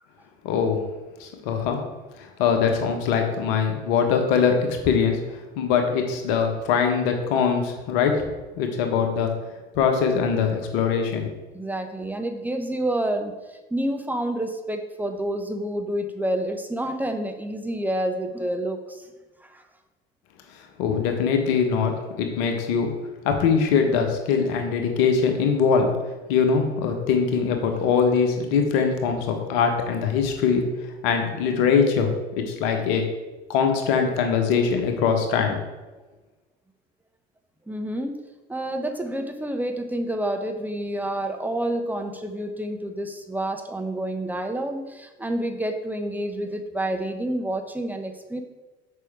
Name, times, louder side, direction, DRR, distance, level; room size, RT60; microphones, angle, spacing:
voice 1, 0.4-0.8 1.2-1.8 2.4-5.2 5.6-8.2 8.6-9.3 9.7-11.3 20.8-21.9 22.2-22.9 23.2-25.9 26.3-30.6 31.0-33.0 33.5-35.6, left 6 dB, 60° left, 4 dB, 1.4 m, -22 dB
voice 2, 11.5-13.3 13.7-19.0 19.4-19.6 37.7-38.2 38.5-48.4, right 1 dB, 5° right, 5 dB, 1.0 m, -28 dB
6.8 x 5.6 x 4.8 m, 1.2 s
figure-of-eight pair, 65°, 31 cm